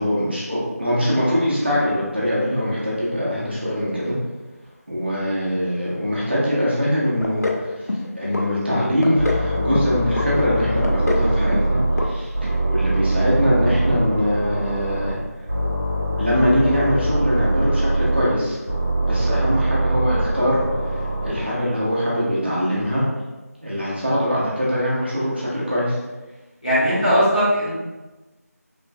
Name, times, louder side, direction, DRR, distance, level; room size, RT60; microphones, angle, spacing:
voice 1, 0.0-4.2 4.9-15.5 16.2-18.6 19.0-23.0 23.6-26.0, equal, 40° right, -7 dB, 0.8 m, -22 dB
sound 1, 7.2-7.6 7.9-8.5 8.8-9.4 9.7-10.3 10.6-11.3 11.5-11.7 12.0-12.1 12.4-12.5, left 3 dB, 75° left, 0.5 m, -26 dB
sound 2, 9.2-12.0 12.3-15.1 15.5-18.2 18.7-21.3, right 1 dB, 10° left, 0.6 m, -23 dB
voice 2, 26.6-27.7, equal, 30° left, -11 dB, 0.9 m, -18 dB
3.2 x 2.8 x 2.2 m, 1.2 s
figure-of-eight pair, 180°, 9 cm